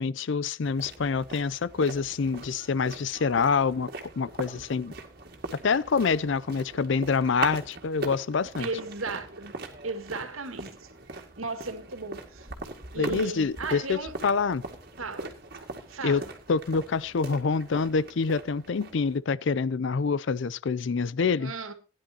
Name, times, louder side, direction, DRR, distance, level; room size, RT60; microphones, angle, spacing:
voice 1, 0.0-3.9 4.2-4.9 5.6-8.7 13.0-14.0 14.2-14.6 16.0-16.2 16.5-21.5, left 5 dB, 65° left, 0.5 m, -26 dB
sound 1, 0.6-19.2, right 2 dB, 50° right, 2.1 m, -41 dB
voice 2, 8.6-9.5 9.8-12.5 12.9-14.1 15.0-15.3 15.9-16.3 21.4-21.7, right 3 dB, 90° right, 2.0 m, -36 dB
17.0 x 10.5 x 2.9 m
head